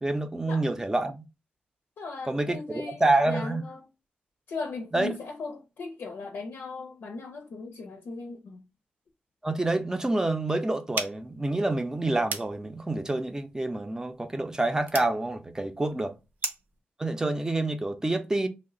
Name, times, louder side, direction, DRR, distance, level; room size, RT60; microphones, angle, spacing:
voice 1, 0.0-1.3 2.3-3.6 4.9-5.1 9.4-16.1 17.0-18.5, right 2 dB, 15° right, 0.5 m, -27 dB
voice 2, 2.0-3.9 4.5-8.7, left 3 dB, 80° left, 0.6 m, -38 dB
sound 1, 10.9-16.8, right 4 dB, 65° right, 0.6 m, -39 dB
3.0 x 2.1 x 3.7 m
cardioid pair, 90°, 4 cm